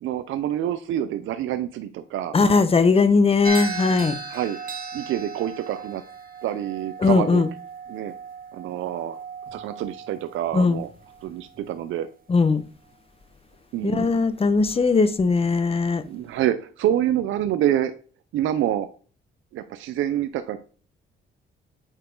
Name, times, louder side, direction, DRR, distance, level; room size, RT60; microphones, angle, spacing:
voice 1, 0.0-2.4 4.3-4.6 4.9-6.0 6.4-7.4 7.9-8.1 8.5-9.2 9.5-10.9 11.2-12.1 13.7-14.1 16.1-17.9 18.3-18.9 19.5-20.6, right 11 dB, 80° right, 0.7 m, -27 dB
voice 2, 2.3-4.2 7.0-7.5 10.5-10.8 12.3-12.6 13.8-16.0, left 4 dB, 30° left, 0.9 m, -19 dB
sound 1, 3.4-11.8, right 5 dB, 45° right, 1.7 m, -37 dB
8.7 x 4.7 x 3.8 m
cardioid pair, 90°, 20 cm